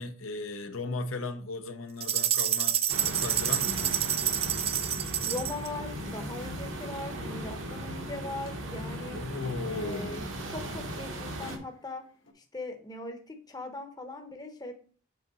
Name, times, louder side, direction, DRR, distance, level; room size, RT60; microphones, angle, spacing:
voice 1, 0.0-4.0 9.1-10.3, left 3 dB, 85° left, 0.7 m, -37 dB
sound 1, 2.0-5.7, right 10 dB, 30° right, 0.3 m, -28 dB
sound 2, 2.9-11.6, right 1 dB, 65° right, 1.0 m, -37 dB
sound 3, 3.0-12.3, left 1 dB, 65° left, 1.2 m, -54 dB
voice 2, 5.2-9.2 9.7-10.2 10.5-12.0 12.4-14.7, left 2 dB, 20° left, 0.7 m, -40 dB
6.9 x 3.8 x 4.0 m
head